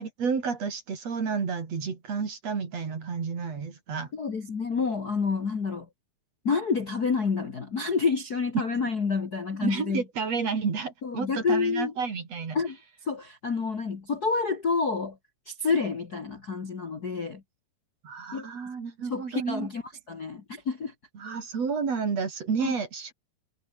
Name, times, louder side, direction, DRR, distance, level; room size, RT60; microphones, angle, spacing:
voice 1, 0.0-4.1 9.6-12.6 18.0-19.7 21.2-23.1, right 5 dB, 40° right, 3.9 m, -31 dB
voice 2, 4.1-5.9 6.4-10.0 11.0-11.9 12.5-12.8 13.0-15.2 15.4-17.4 18.3-18.5 19.1-19.8 20.1-20.9 22.6-22.8, left 5 dB, 60° left, 0.9 m, -28 dB
omnidirectional pair, 5.2 m